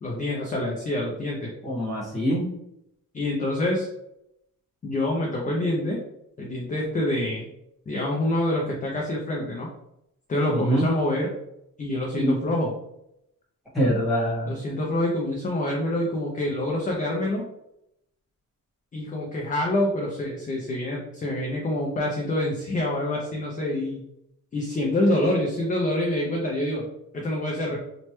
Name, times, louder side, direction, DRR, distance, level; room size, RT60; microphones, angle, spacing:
voice 1, 0.0-1.5 3.1-3.9 4.8-6.0 6.4-7.5 7.9-9.7 10.3-11.3 11.8-12.7 14.5-17.5 18.9-24.0 24.5-26.9 27.1-27.8, left 1 dB, 25° left, -1 dB, 0.3 m, -26 dB
voice 2, 1.6-2.5 10.5-10.9 12.1-12.4 13.7-14.5, equal, ahead, -8 dB, 1.3 m, -24 dB
3.0 x 2.1 x 2.9 m, 0.81 s
wide cardioid pair, 175°, 33 cm